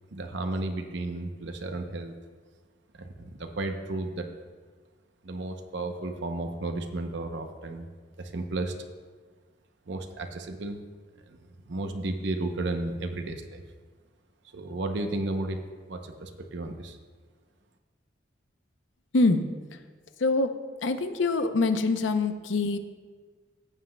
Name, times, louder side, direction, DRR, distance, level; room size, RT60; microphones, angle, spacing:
voice 1, 0.1-2.1 2.9-4.3 5.2-7.9 8.2-8.7 9.9-10.8 11.3-11.4 11.7-13.6 14.5-15.6 15.9-17.0, right 2 dB, 65° right, 5 dB, 0.7 m, -33 dB
voice 2, 19.1-19.4 20.2-20.5 20.8-22.8, left 3 dB, 75° left, 9 dB, 0.6 m, -24 dB
15.0 x 7.6 x 2.2 m, 1.5 s
head